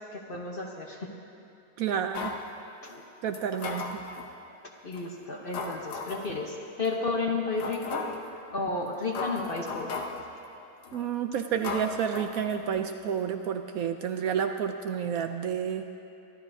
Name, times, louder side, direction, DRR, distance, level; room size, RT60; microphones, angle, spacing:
voice 1, 0.1-1.1 2.8-3.0 3.5-3.9 4.8-8.1 8.5-9.9, left 3 dB, 40° left, 0 dB, 1.0 m, -32 dB
voice 2, 1.8-2.3 3.2-4.0 10.9-15.9, right 8 dB, 70° right, 6 dB, 0.9 m, -30 dB
sound 1, 2.1-2.5 3.3-4.3 4.9-5.0 5.5-6.3 6.8-6.9 7.6-8.3 8.9-9.0 9.1-10.3 10.8-11.1 11.6-12.9 13.2-13.3, left 4 dB, 90° left, 1.5 m, -36 dB
24.0 x 12.0 x 2.7 m, 2.8 s
omnidirectional pair, 1.7 m